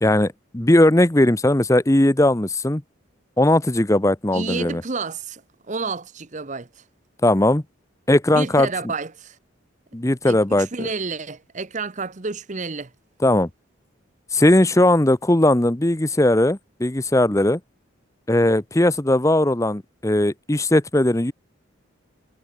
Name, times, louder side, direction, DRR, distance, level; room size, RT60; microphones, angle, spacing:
voice 1, 0.0-2.8 3.4-4.8 7.2-7.6 8.1-8.7 9.9-10.9 13.2-13.5 14.3-17.6 18.3-21.3, left 1 dB, 15° left, 0.8 m, -18 dB
voice 2, 4.3-5.4 5.7-6.7 8.3-9.4 10.2-12.9, right 4 dB, 35° right, 0.8 m, -30 dB
head